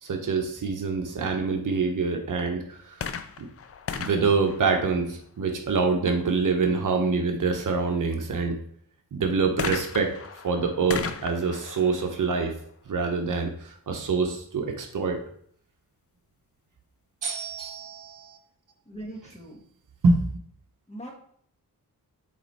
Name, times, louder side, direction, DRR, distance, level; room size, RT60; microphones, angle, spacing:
voice 1, 0.0-3.0 3.4-3.5 4.0-8.6 9.1-10.1 10.4-12.5 12.9-15.2 17.2-18.4 20.0-20.4, right 4 dB, 55° right, 3 dB, 1.0 m, -26 dB
sound 1, 2.9-5.5 9.6-13.2 14.0-14.1, left 6 dB, 40° left, 0.5 m, -36 dB
voice 2, 18.8-19.6 20.9-21.1, right 1 dB, 20° left, -1 dB, 1.5 m, -40 dB
7.9 x 3.1 x 4.2 m, 0.63 s
wide cardioid pair, 125°, 36 cm